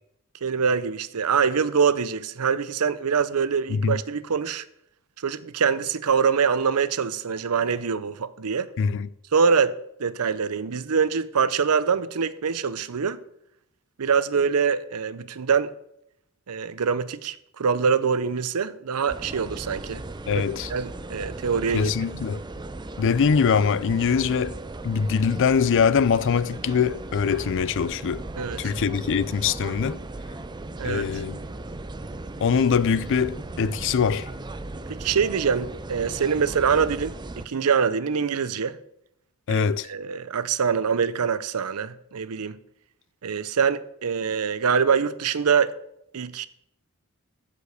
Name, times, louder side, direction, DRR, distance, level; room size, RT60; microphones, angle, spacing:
voice 1, 0.4-4.6 5.2-8.7 9.3-9.7 10.0-13.2 14.0-15.7 16.5-20.0 20.3-20.4 20.7-21.9 28.4-28.7 30.8-31.2 34.9-38.8 39.5-42.6 43.2-45.7 46.1-46.5, right 6 dB, 85° right, 0.6 m, -24 dB
voice 2, 8.8-9.1 20.3-20.7 21.7-22.4 23.0-24.6 24.8-28.2 28.6-30.0 30.8-31.4 32.4-34.3 39.5-39.9, left 6 dB, 60° left, 0.4 m, -23 dB
sound 1, 19.1-37.5, right 2 dB, 20° right, 0.5 m, -37 dB
15.0 x 5.1 x 6.5 m
head